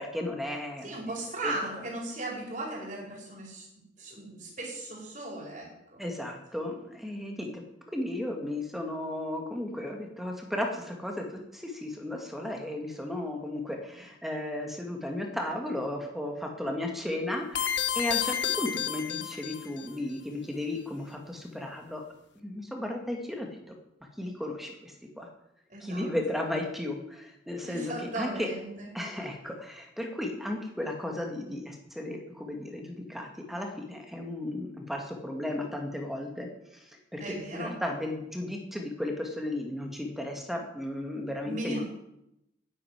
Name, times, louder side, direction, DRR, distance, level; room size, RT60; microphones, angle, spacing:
voice 1, 0.0-1.0 1.4-1.5 6.0-7.6 7.9-22.0 22.4-23.8 24.2-25.3 25.8-28.5 28.9-36.8 37.1-41.8, left 1 dB, ahead, 2 dB, 2.1 m, -35 dB
voice 2, 0.8-3.7 4.0-6.0 25.7-26.1 27.6-28.9 37.2-37.7 41.4-41.8, right 2 dB, 40° right, -2 dB, 5.1 m, -37 dB
sound 1, 17.5-19.9, left 9 dB, 70° left, 1.2 m, -30 dB
10.5 x 8.4 x 9.4 m, 0.83 s
head